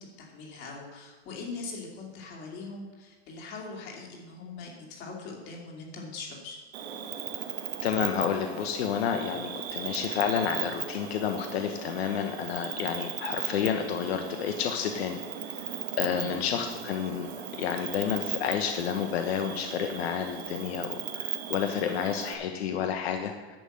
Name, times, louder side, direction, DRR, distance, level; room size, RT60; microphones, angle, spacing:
voice 1, 0.0-6.6 16.1-16.4, left 3 dB, 30° left, -1 dB, 2.4 m, -41 dB
Cricket, 6.7-22.3, right 9 dB, 70° right, 1.6 m, -37 dB
voice 2, 7.8-15.2 15.6-15.7 16.0-23.6, left 8 dB, 70° left, 5 dB, 1.1 m, -30 dB
10.5 x 5.7 x 7.7 m, 1.4 s
supercardioid pair, 175°, 33 cm